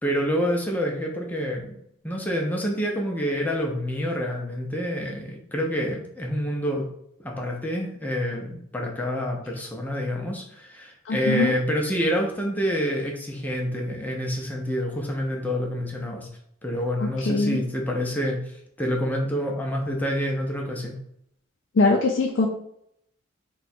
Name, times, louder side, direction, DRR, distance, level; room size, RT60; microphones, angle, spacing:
voice 1, 0.0-1.7 2.0-6.9 7.2-16.3 16.6-21.0, equal, 10° left, 0 dB, 0.5 m, -27 dB
voice 2, 11.1-11.5 17.0-17.6 21.8-22.5, left 3 dB, 60° left, -1 dB, 0.4 m, -22 dB
2.8 x 2.3 x 4.1 m, 0.71 s
head